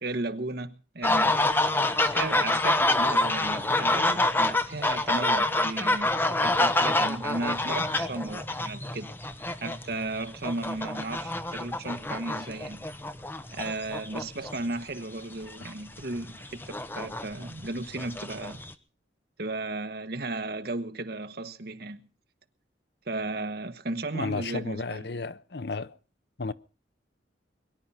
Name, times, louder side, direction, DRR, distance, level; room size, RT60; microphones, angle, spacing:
voice 1, 0.0-1.6 2.1-9.1 9.6-12.9 13.5-18.6 19.4-22.0 23.1-25.1, right 2 dB, 55° right, 1.3 m, -35 dB
sound 1, 1.0-14.8 15.5-15.7 16.0-18.7, left 2 dB, 10° left, 0.9 m, -27 dB
voice 2, 24.1-26.0 26.4-26.5, left 3 dB, 60° left, 0.7 m, -33 dB
22.5 x 11.0 x 5.7 m
head